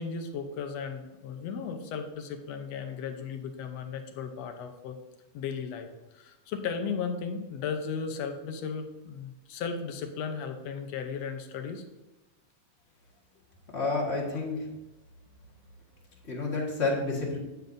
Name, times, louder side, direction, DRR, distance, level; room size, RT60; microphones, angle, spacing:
voice 1, 0.0-5.0 5.3-11.8 14.3-14.4, left 6 dB, 70° left, 6 dB, 1.8 m, -35 dB
voice 2, 13.7-14.6 16.2-17.4, left 3 dB, 35° left, -2 dB, 1.1 m, -29 dB
9.2 x 9.0 x 2.6 m, 1.0 s
omnidirectional pair, 3.4 m